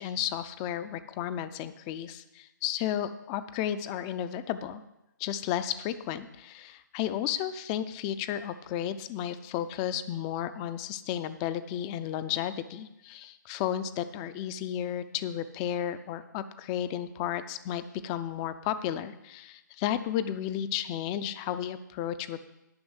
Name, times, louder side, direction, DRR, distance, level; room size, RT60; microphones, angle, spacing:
voice 1, 0.0-4.8 5.2-22.4, left 10 dB, 20° left, 13 dB, 0.4 m, -33 dB
10.5 x 5.4 x 8.0 m, 0.96 s
hypercardioid pair, 150°, 11 cm